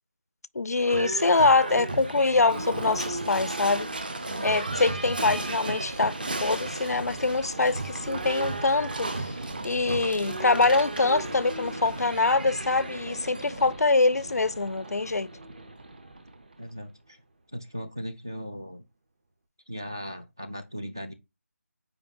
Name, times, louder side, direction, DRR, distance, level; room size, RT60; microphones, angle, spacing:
voice 1, 0.5-3.9 4.4-9.3 9.6-15.3, left 3 dB, 80° left, 0.5 m, -24 dB
Livestock farm animals working animals / Bell, 0.8-16.6, right 2 dB, 35° right, 1.1 m, -34 dB
voice 2, 16.6-17.2 17.5-18.8 19.7-21.1, equal, 15° right, 0.4 m, -38 dB
7.8 x 4.8 x 3.5 m
figure-of-eight pair, 180°, 8 cm